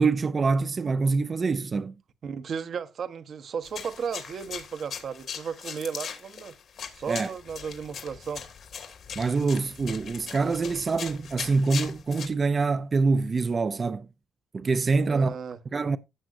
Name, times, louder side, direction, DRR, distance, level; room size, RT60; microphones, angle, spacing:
voice 1, 0.0-1.9 7.1-7.3 9.2-14.1 14.5-15.4 15.7-16.0, right 4 dB, 35° right, 0.5 m, -25 dB
voice 2, 2.2-6.5 6.9-8.4 15.1-15.6, right 6 dB, 55° right, 1.0 m, -34 dB
sound 1, 3.6-12.3, left 7 dB, 65° left, 2.5 m, -40 dB
15.5 x 6.2 x 2.6 m
cardioid pair, 90°, 0 cm